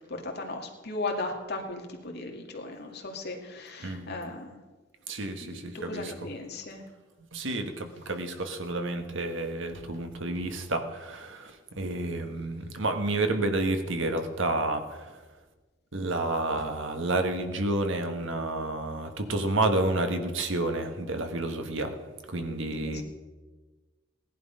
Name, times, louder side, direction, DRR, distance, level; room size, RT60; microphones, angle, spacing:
voice 1, 0.1-4.6 5.4-6.8 22.8-23.0, left 2 dB, 55° left, 2 dB, 2.1 m, -37 dB
voice 2, 5.1-6.1 7.2-15.2 15.9-22.0 22.3-23.0, right 2 dB, 65° right, 6 dB, 1.5 m, -30 dB
17.5 x 11.0 x 5.5 m, 1.3 s
head